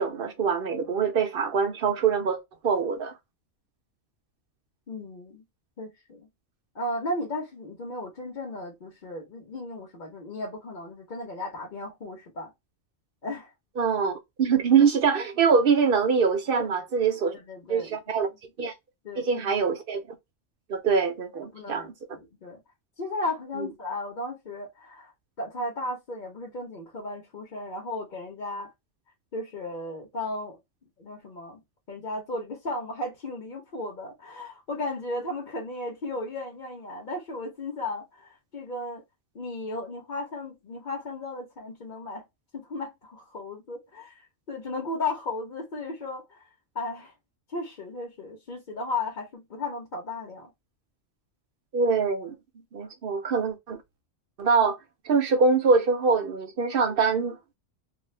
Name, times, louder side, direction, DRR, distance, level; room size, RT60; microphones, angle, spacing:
voice 1, 0.0-2.4 2.6-3.1 13.8-14.1 14.4-17.3 17.7-18.3 18.6-18.7 19.2-20.0 20.7-21.9 23.6-23.7 51.7-52.3 52.7-53.8 54.4-54.8 55.0-57.6, right 5 dB, 55° right, 0.7 m, -24 dB
voice 2, 4.9-5.4 5.8-6.3 6.7-12.5 13.2-13.5 16.6-16.7 17.3-17.9 18.3-18.4 19.0-19.6 21.5-22.6 23.0-25.1 25.4-28.7 29.3-30.6 31.0-31.6 31.9-39.0 39.3-42.2 42.5-46.5 46.7-47.1 47.5-50.5, left 2 dB, 45° left, 0.9 m, -35 dB
2.4 x 2.4 x 3.2 m
omnidirectional pair, 1.3 m